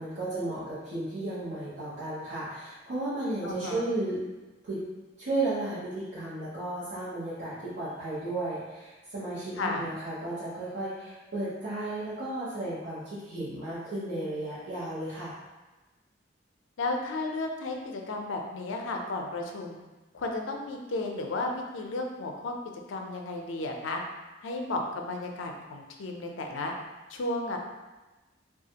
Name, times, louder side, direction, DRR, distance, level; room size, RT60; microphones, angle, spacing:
voice 1, 0.0-4.2 4.6-4.8 5.2-15.3, right 2 dB, 60° right, -12 dB, 0.8 m, -34 dB
voice 2, 3.4-3.8 9.6-9.9 16.8-19.8 20.1-22.5 22.9-24.0 24.4-26.7 27.1-27.6, left 2 dB, 85° left, 2 dB, 0.5 m, -33 dB
3.1 x 2.3 x 2.8 m, 1.2 s
head